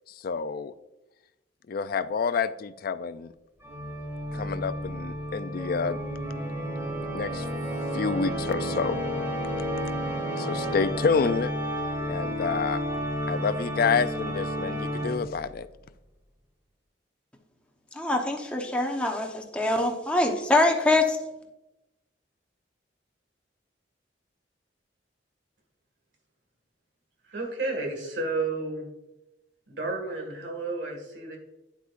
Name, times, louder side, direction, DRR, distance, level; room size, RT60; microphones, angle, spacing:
voice 1, 0.2-0.7 1.7-3.3 4.3-6.0 7.1-7.4 7.9-9.0 10.4-11.5 12.1-12.8 13.3-15.7, left 5 dB, 55° left, 12 dB, 0.4 m, -28 dB
Organ, 3.6-15.5, equal, 15° right, 1.9 m, -31 dB
voice 2, 17.9-21.2, left 2 dB, 5° left, 2 dB, 0.9 m, -24 dB
voice 3, 27.3-28.9 29.7-31.4, right 3 dB, 75° right, 2 dB, 2.0 m, -31 dB
9.4 x 8.1 x 2.5 m, 0.96 s
head